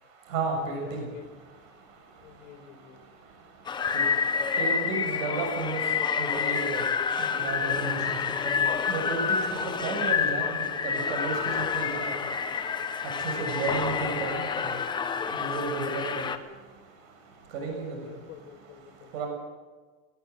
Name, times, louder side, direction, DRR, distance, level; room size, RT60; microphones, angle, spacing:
voice 1, 0.3-1.0 3.9-4.0 4.6-5.8 6.2-6.8 7.3-8.2 8.4-10.5 10.8-12.1 13.2-14.7 15.3-16.2 17.5-17.9 19.1-19.3, right 4 dB, 70° right, 2 dB, 6.9 m, -32 dB
voice 2, 0.8-1.3 2.2-3.0 4.1-4.3 4.9-5.3 9.5-10.0 11.7-12.0 15.9-16.2 18.0-19.1, left 9 dB, 60° left, 3 dB, 4.3 m, -48 dB
sound 1, 3.7-16.4, left 6 dB, 10° left, 0.8 m, -28 dB
19.5 x 19.0 x 8.2 m, 1.3 s
supercardioid pair, 165°, 40 cm